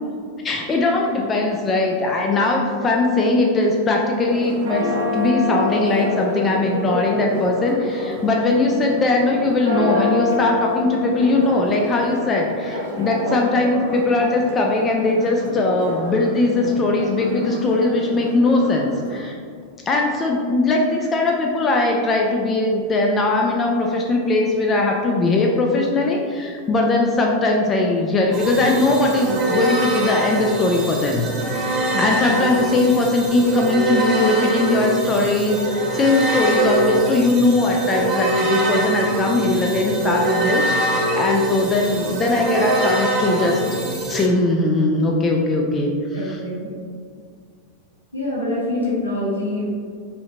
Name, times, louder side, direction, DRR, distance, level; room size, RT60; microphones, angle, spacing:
voice 1, 0.4-19.3 19.9-43.6 44.1-46.4, left 2 dB, 20° left, 0 dB, 0.4 m, -20 dB
Church bell, 4.2-19.2, left 2 dB, 65° right, 1.0 m, -28 dB
sound 1, 28.3-44.3, right 1 dB, 30° right, 1.0 m, -23 dB
voice 2, 31.9-32.3 46.1-46.7 48.1-49.8, left 1 dB, 80° left, -6 dB, 1.4 m, -25 dB
5.5 x 2.8 x 3.2 m, 2.1 s
figure-of-eight pair, 90°, 0 cm